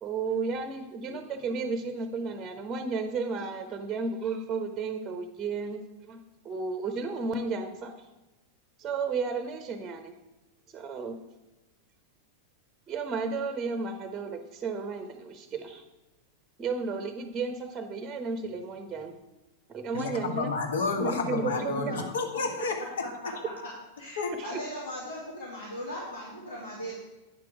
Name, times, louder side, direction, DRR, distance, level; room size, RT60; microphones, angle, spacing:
voice 1, 0.0-6.2 6.4-7.9 8.8-10.1 10.7-11.2 12.9-15.8 16.6-19.1 19.7-20.5 21.0-22.0 24.4-24.6, right 4 dB, 20° right, 7 dB, 0.8 m, -33 dB
voice 2, 19.9-23.1 24.2-24.3, left 4 dB, 60° left, 6 dB, 1.2 m, -31 dB
voice 3, 21.4-22.0 24.0-26.9, equal, 80° left, -7 dB, 2.5 m, -38 dB
9.0 x 6.0 x 4.8 m, 1.1 s
figure-of-eight pair, 90°, 0 cm